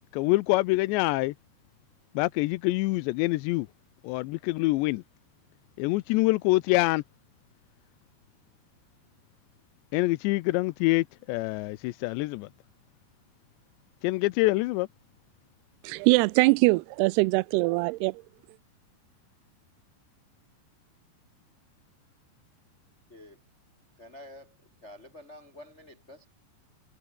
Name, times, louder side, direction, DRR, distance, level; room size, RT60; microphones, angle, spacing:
voice 1, 0.1-1.3 2.2-3.7 4.0-5.0 5.8-7.0 9.9-12.5 14.0-14.9, left 21 dB, 80° left, 2.8 m, -25 dB
voice 2, 15.8-18.2, right 24 dB, 90° right, 2.3 m, -22 dB
voice 3, 23.1-23.4 24.0-24.6 24.8-26.3, left 1 dB, 15° left, 4.1 m, -48 dB
omnidirectional pair, 5.2 m